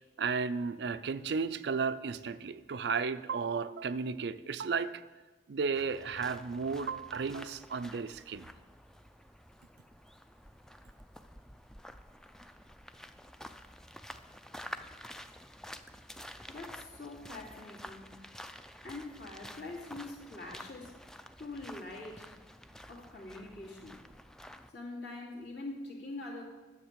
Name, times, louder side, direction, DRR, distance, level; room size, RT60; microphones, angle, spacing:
voice 1, 0.2-5.0 5.5-8.5, right 5 dB, 65° right, 13 dB, 0.4 m, -34 dB
sound 1, 5.7-24.7, equal, 5° left, 0.3 m, -50 dB
voice 2, 16.5-18.1 18.8-21.0 21.4-22.3 22.9-24.0 24.7-26.4, left 2 dB, 65° left, -2 dB, 2.6 m, -44 dB
10.0 x 7.1 x 7.4 m, 1.3 s
head